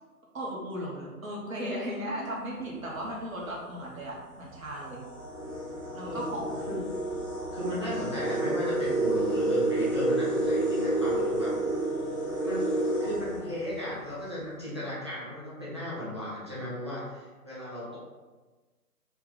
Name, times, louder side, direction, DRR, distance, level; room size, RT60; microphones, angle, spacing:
voice 1, 0.3-5.0 5.9-6.7, equal, 60° right, -3 dB, 1.3 m, -36 dB
sound 1, 2.8-3.0 3.9-4.0 4.4-14.2, right 1 dB, 20° left, 0.8 m, -30 dB
voice 2, 7.5-11.5 12.4-12.6 13.0-18.0, equal, 20° right, -10 dB, 0.6 m, -35 dB
4.5 x 2.2 x 3.8 m, 1.3 s
figure-of-eight pair, 155°, 47 cm